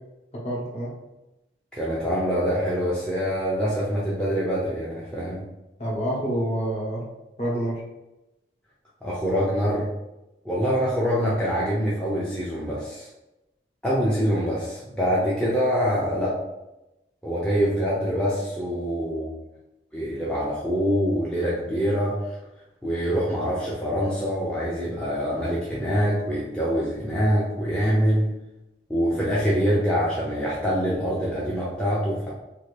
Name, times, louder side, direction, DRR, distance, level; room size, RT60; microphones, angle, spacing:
voice 1, 0.4-0.9 5.8-7.0 7.4-7.8, right 1 dB, 35° left, -5 dB, 0.8 m, -27 dB
voice 2, 1.7-5.4 9.0-9.9 10.4-13.1 13.8-16.3 17.2-19.3 19.9-22.2 22.8-28.3 28.9-32.3, equal, 5° left, -8 dB, 0.5 m, -25 dB
2.7 x 2.5 x 3.2 m, 0.95 s
head